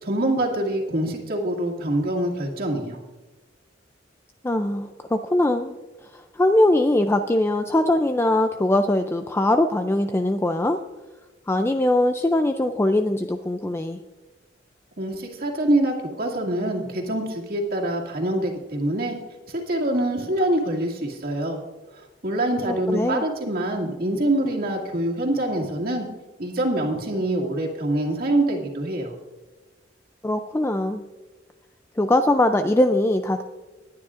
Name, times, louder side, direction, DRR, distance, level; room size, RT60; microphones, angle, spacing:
voice 1, 0.0-3.0 15.0-19.2 19.5-21.6 22.0-26.1 26.4-29.1, right 1 dB, 55° right, -1 dB, 2.2 m, -25 dB
voice 2, 4.4-5.8 6.0-10.8 11.5-14.0 22.7-23.2 30.2-31.0 32.0-33.4, left 1 dB, 15° left, 7 dB, 0.4 m, -21 dB
21.0 x 9.6 x 2.5 m, 1.2 s
head